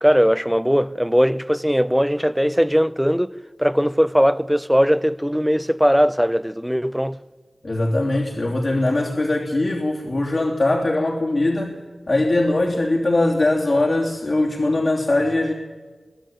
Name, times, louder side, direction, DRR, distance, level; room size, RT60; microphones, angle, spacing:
voice 1, 0.0-7.2, equal, 5° right, 0.8 m, -19 dB
voice 2, 7.6-11.8 12.1-15.5, left 2 dB, 60° left, 3.2 m, -21 dB
23.0 x 16.0 x 9.0 m
cardioid pair, 45°, 0 cm